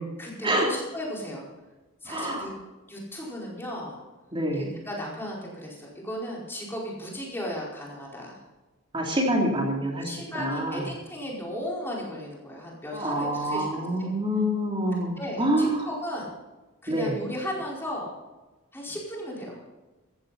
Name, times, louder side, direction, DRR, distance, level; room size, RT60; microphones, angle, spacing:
voice 1, 0.2-1.5 2.0-2.5 2.9-4.0 4.5-8.4 10.0-14.1 15.2-16.3 16.8-18.1 18.7-19.6, equal, 10° left, -4 dB, 4.8 m, -36 dB
voice 2, 2.1-2.5 4.3-4.7 8.9-10.1 10.3-10.8 12.9-15.8 16.9-17.1, right 1 dB, 25° right, -1 dB, 3.3 m, -26 dB
15.5 x 15.0 x 4.3 m, 1.2 s
head